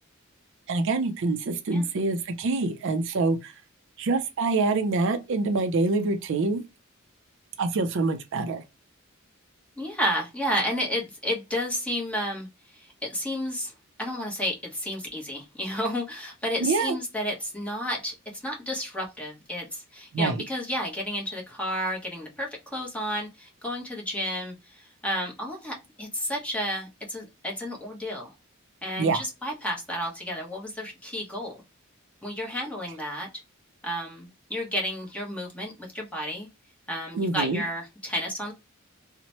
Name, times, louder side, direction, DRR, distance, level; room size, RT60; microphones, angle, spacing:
voice 1, 0.7-3.5 4.0-6.6 7.6-8.6 16.6-17.0 20.1-20.4 29.0-29.2 37.1-37.6, right 3 dB, 60° right, 0.4 m, -25 dB
voice 2, 9.8-12.5 12.7-13.7 14.0-28.3 28.8-31.6 32.2-33.3 33.8-36.5 36.9-38.5, equal, 5° left, 0.9 m, -31 dB
2.9 x 2.1 x 2.8 m
head